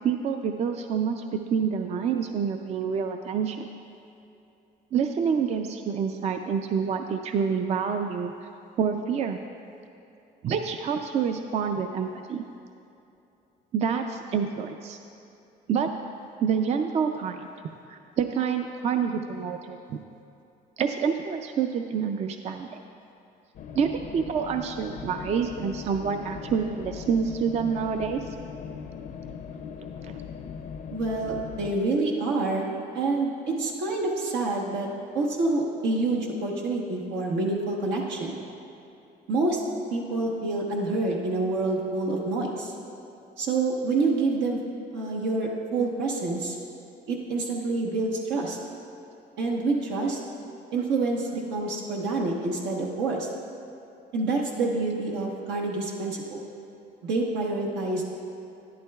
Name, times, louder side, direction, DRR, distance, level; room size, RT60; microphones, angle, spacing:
voice 1, 0.0-1.2 1.5-3.7 4.9-8.3 8.8-9.4 10.4-12.4 13.7-15.0 15.7-15.9 16.4-17.5 17.9-20.0 20.8-22.7 23.8-28.2, right 6 dB, 40° right, 6 dB, 0.4 m, -27 dB
sound 1, 23.5-31.7, left 7 dB, 50° left, 0.5 m, -39 dB
voice 2, 30.9-34.9 35.1-38.4 39.3-39.6 39.9-42.7 43.4-44.6 44.9-46.6 47.1-48.6 49.4-50.2 50.7-53.3 54.1-56.4 57.0-58.0, right 3 dB, 85° right, -1 dB, 1.1 m, -27 dB
12.0 x 10.5 x 2.3 m, 2.8 s
cardioid pair, 110°, 17 cm